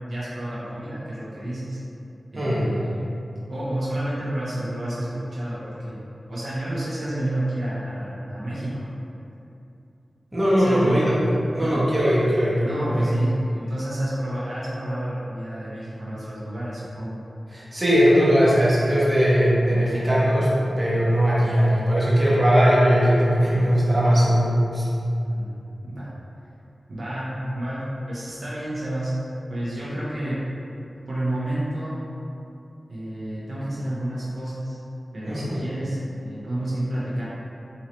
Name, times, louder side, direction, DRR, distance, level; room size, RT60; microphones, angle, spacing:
voice 1, 0.1-1.8 2.3-3.1 3.5-6.0 6.3-8.9 10.6-11.1 11.6-11.8 12.6-17.2 19.6-20.2 25.2-26.1 26.9-29.1 29.5-30.4 31.1-32.0 32.9-34.8 35.1-37.3, right 1 dB, 75° right, -9 dB, 0.8 m, -30 dB
voice 2, 2.4-2.7 10.3-11.2 11.5-13.1 17.5-20.5 20.8-24.9 35.2-35.6, equal, 30° right, -8 dB, 1.2 m, -19 dB
4.2 x 2.7 x 3.0 m, 2.7 s
cardioid pair, 50°, 0 cm